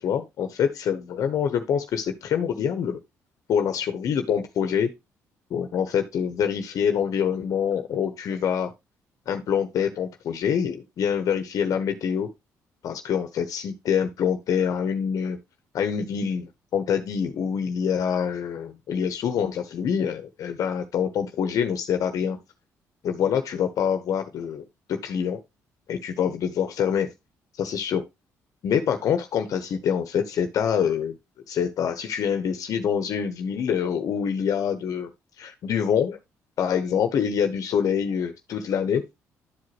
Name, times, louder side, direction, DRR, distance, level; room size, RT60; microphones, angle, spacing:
voice 1, 0.0-3.0 3.5-4.9 5.5-8.7 9.3-12.3 12.8-15.4 15.7-22.4 23.0-25.4 25.9-27.1 27.6-28.0 28.6-31.2 31.5-35.1 35.4-36.2 36.6-39.0, left 7 dB, 70° left, 1.1 m, -25 dB
11.5 x 4.9 x 3.1 m
cardioid pair, 80°, 6 cm